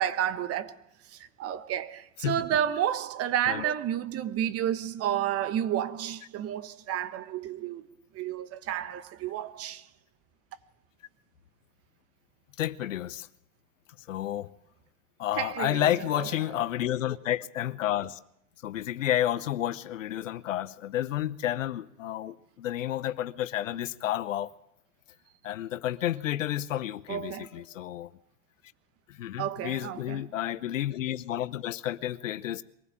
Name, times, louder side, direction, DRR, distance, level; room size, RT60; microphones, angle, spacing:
voice 1, 0.0-7.8 8.1-9.9 15.4-16.3 27.1-27.6 29.4-30.2, right 10 dB, 40° right, 1.2 m, -31 dB
voice 2, 12.6-13.3 14.1-14.5 15.2-18.2 18.6-24.5 25.4-28.1 29.1-32.6, left 12 dB, 80° left, 0.9 m, -31 dB
23.5 x 15.5 x 7.5 m
hypercardioid pair, 100°, 38 cm